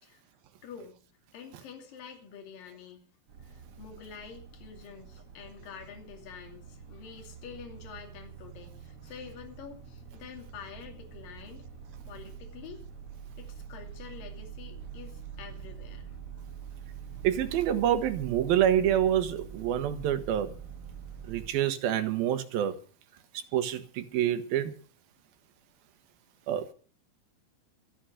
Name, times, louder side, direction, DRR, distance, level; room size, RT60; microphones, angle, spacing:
voice 1, 0.6-1.0 1.3-3.1 3.4-11.7 12.1-12.8 13.4-16.2, left 7 dB, 60° left, 4.1 m, -47 dB
sound 1, 3.3-21.5, right 7 dB, 40° right, 5.7 m, -45 dB
voice 2, 17.2-20.5 21.3-22.8 23.5-24.7 26.5-26.7, right 10 dB, 70° right, 2.9 m, -27 dB
13.0 x 12.0 x 6.5 m
omnidirectional pair, 4.5 m